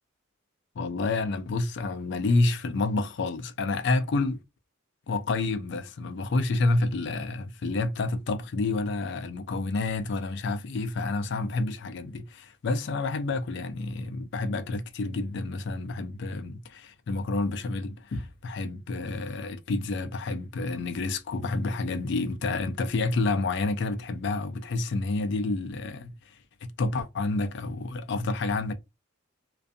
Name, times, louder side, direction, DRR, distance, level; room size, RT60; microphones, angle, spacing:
voice 1, 0.8-4.4 5.1-26.4 26.6-28.7, left 3 dB, 55° left, 0.4 m, -29 dB
2.5 x 2.3 x 2.5 m
head